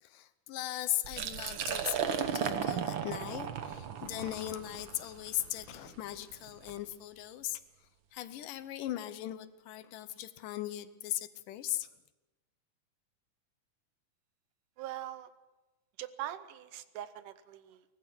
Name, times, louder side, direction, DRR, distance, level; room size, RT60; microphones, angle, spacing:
voice 1, 0.0-7.6 8.1-11.9, left 13 dB, 85° left, 13 dB, 2.5 m, -38 dB
Liquid, 1.0-6.8, right 7 dB, 65° right, 1.2 m, -36 dB
voice 2, 14.8-15.3 16.0-17.8, right 12 dB, 80° right, 13 dB, 2.4 m, -42 dB
23.5 x 18.5 x 6.2 m, 1.1 s
omnidirectional pair, 3.7 m